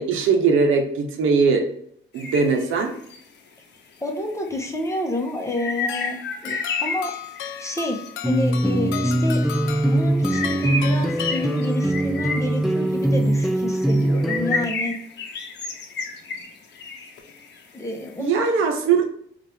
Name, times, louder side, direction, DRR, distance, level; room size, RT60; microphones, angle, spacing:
voice 1, 0.0-1.7 2.1-2.9 18.2-19.1, right 5 dB, 85° right, 4 dB, 0.8 m, -20 dB
sound 1, 2.2-3.2 4.1-4.2 4.5-8.1 8.9-9.1 9.4-18.1, left 4 dB, 60° left, 0.8 m, -32 dB
voice 2, 4.0-7.1 7.6-9.4 9.8-15.0 17.7-18.4, left 1 dB, 15° left, 2 dB, 0.8 m, -29 dB
sound 2, 5.9-12.0, left 10 dB, 85° left, 0.4 m, -36 dB
sound 3, 8.2-14.6, right 1 dB, ahead, 0.4 m, -22 dB
4.4 x 2.5 x 3.4 m, 0.66 s
cardioid pair, 90°, 20 cm